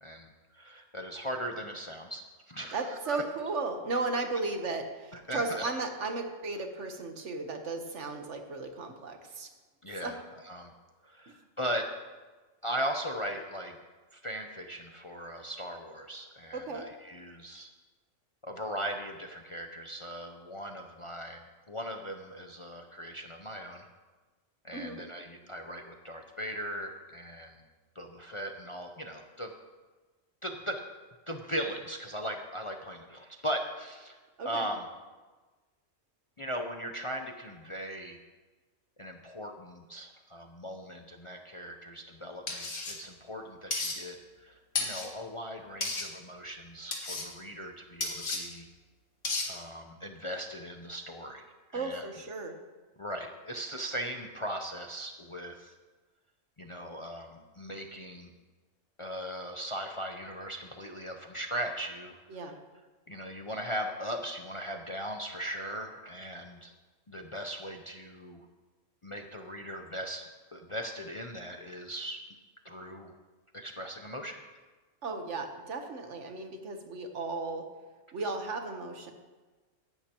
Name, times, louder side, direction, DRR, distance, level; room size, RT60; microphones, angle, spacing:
voice 1, 0.0-3.2 5.1-5.7 9.8-10.7 11.0-11.9 12.6-13.8 14.1-17.7 18.4-23.9 24.6-27.5 27.9-29.5 30.4-30.8 31.3-34.2 34.4-34.9 36.4-38.2 39.0-48.7 49.4-51.4 51.7-52.1 53.0-55.7 56.6-58.3 59.0-62.5 63.1-66.7 67.1-68.5 69.0-70.2 70.5-72.2 72.6-73.1 73.5-74.4, equal, 35° left, 4 dB, 0.6 m, -39 dB
voice 2, 2.7-9.5 10.0-10.1 11.3-11.4 16.5-16.9 24.7-25.0 34.4-34.7 51.7-52.5 62.3-62.5 75.0-77.7 78.1-79.1, right 3 dB, 70° right, 5 dB, 1.5 m, -35 dB
sound 1, 42.5-42.9 43.7-44.0 44.7-45.1 45.8-46.1 46.9-47.3 48.0-48.4 49.2-49.5, left 3 dB, 75° left, 2.1 m, -32 dB
17.0 x 11.5 x 3.0 m, 1.3 s
omnidirectional pair, 1.3 m